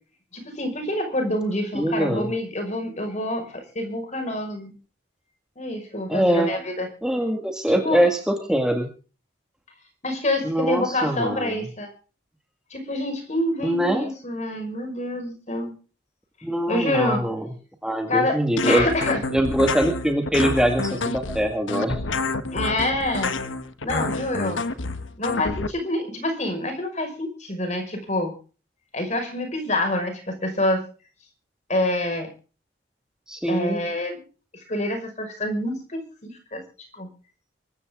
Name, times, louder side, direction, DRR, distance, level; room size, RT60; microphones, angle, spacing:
voice 1, 0.3-4.7 5.6-6.9 7.7-8.0 10.0-11.9 12.7-15.7 16.7-17.2 18.1-19.2 22.5-23.3 23.8-24.6 25.2-28.3 28.9-30.9 31.7-32.3 33.5-34.2 34.7-36.6 36.9-37.1, left 1 dB, 35° left, 6 dB, 5.7 m, -27 dB
voice 2, 1.7-2.3 6.1-6.5 7.0-8.9 10.4-11.6 13.6-14.1 16.4-17.5 17.8-18.9 19.3-22.0 33.3-33.8, right 1 dB, 5° right, 3 dB, 2.0 m, -23 dB
sound 1, 18.6-25.7, left 3 dB, 80° left, 1.4 m, -28 dB
24.5 x 13.5 x 3.8 m, 0.38 s
head